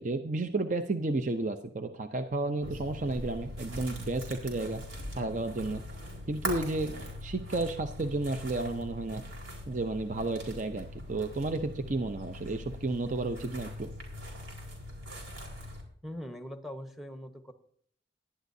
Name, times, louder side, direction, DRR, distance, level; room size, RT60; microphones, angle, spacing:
voice 1, 0.0-4.8 5.2-5.8 6.3-6.9 7.2-9.2 9.7-13.9, right 2 dB, 40° right, 7 dB, 0.6 m, -32 dB
sound 1, 2.6-15.8, equal, 90° right, 4.4 m, -42 dB
voice 2, 16.0-17.5, equal, ahead, 7 dB, 0.9 m, -41 dB
18.5 x 11.5 x 2.7 m, 0.62 s
head